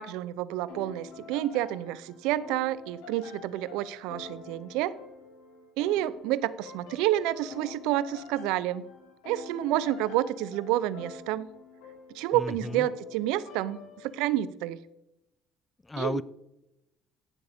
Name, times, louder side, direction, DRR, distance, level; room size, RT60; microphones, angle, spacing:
voice 1, 0.0-4.9 5.8-8.9 9.2-11.5 12.1-14.8 16.0-16.2, right 13 dB, 80° right, 0.5 m, -29 dB
sound 1, 0.7-14.4, left 5 dB, 80° left, 2.1 m, -47 dB
voice 2, 12.3-12.9 15.8-16.2, left 2 dB, 20° left, 0.5 m, -33 dB
15.0 x 7.8 x 3.5 m
supercardioid pair, 75°, 0 cm